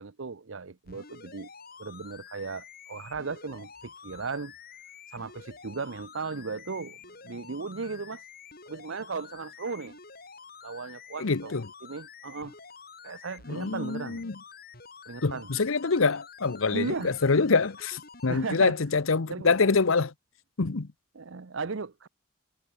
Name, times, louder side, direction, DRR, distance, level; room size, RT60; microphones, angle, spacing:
voice 1, 0.0-1.5 1.8-4.5 5.1-8.2 8.7-10.0 10.6-11.5 11.8-12.5 13.0-14.2 15.1-15.5 16.7-17.1 18.3-18.8 19.3-19.5 21.1-22.1, right 4 dB, 65° right, 0.7 m, -36 dB
sound 1, 0.8-18.7 19.3-19.4, left 5 dB, 45° left, 4.5 m, -49 dB
voice 2, 11.2-11.7 13.5-14.3 15.2-20.1 20.6-20.9, left 4 dB, 75° left, 0.9 m, -25 dB
head